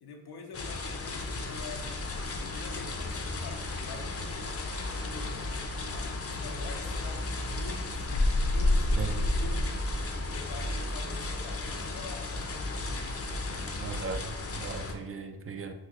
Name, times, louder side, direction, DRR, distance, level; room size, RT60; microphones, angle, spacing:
voice 1, 0.0-2.0 2.4-5.4 5.9-7.2 7.5-9.8 10.2-13.2 13.5-13.7, left 4 dB, 90° left, 0.6 m, -46 dB
sound 1, 0.5-14.9, left 2 dB, 40° left, 0.5 m, -32 dB
voice 2, 13.8-15.7, right 5 dB, 40° right, 0.4 m, -37 dB
3.9 x 2.6 x 3.0 m
cardioid pair, 40°, 38 cm